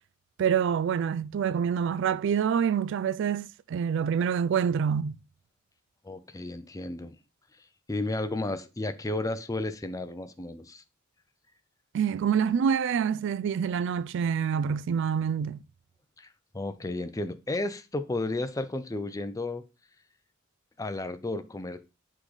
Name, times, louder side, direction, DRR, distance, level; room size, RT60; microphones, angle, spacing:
voice 1, 0.4-5.2 11.9-15.6, right 7 dB, 65° right, 0.3 m, -26 dB
voice 2, 6.0-7.2 7.9-10.8 16.2-16.3 16.5-19.6 20.8-21.8, left 2 dB, 15° left, 0.5 m, -33 dB
8.1 x 3.7 x 3.2 m
head